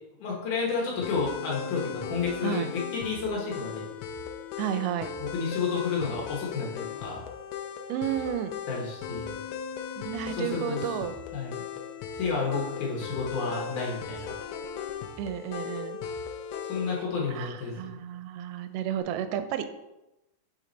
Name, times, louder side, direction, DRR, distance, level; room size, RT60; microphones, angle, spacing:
voice 1, 0.2-3.9 5.2-7.2 8.7-9.3 10.3-10.9 11.3-11.6 12.1-14.3 16.6-17.9, left 5 dB, 65° left, -3 dB, 2.4 m, -31 dB
sound 1, 1.0-17.1, left 7 dB, 85° left, 2.4 m, -38 dB
voice 2, 4.6-5.1 7.9-8.6 10.1-11.1 15.2-16.0 17.3-19.7, right 10 dB, 90° right, 9 dB, 2.5 m, -32 dB
7.3 x 4.7 x 4.0 m, 0.96 s
omnidirectional pair, 4.4 m